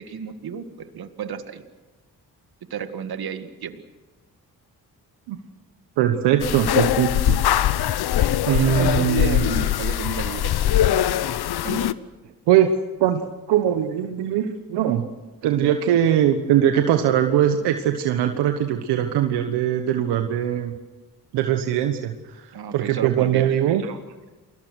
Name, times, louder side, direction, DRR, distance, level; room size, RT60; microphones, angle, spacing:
voice 1, 0.0-1.6 2.7-3.8 8.4-11.0 11.6-12.0 22.5-23.9, right 7 dB, 65° right, 9 dB, 2.0 m, -32 dB
voice 2, 6.0-7.4 8.5-9.5 12.5-12.7 13.0-13.2 13.5-15.1 15.4-20.7 21.3-24.0, right 10 dB, 90° right, 7 dB, 1.3 m, -21 dB
sound 1, 6.4-11.9, left 12 dB, 70° left, 1.0 m, -21 dB
29.0 x 21.0 x 6.3 m, 1.2 s
supercardioid pair, 50°, 39 cm